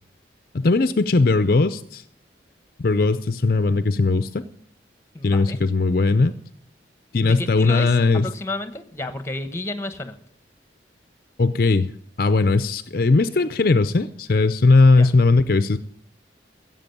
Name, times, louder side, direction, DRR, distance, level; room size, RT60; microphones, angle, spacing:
voice 1, 0.5-2.0 2.8-4.4 5.2-6.3 7.1-8.3 11.4-11.9 12.2-15.8, left 3 dB, 50° left, 12 dB, 0.5 m, -18 dB
voice 2, 5.1-5.6 7.2-10.2 15.0-15.1, left 2 dB, 15° left, 10 dB, 1.1 m, -31 dB
15.0 x 7.6 x 9.2 m, 0.65 s
head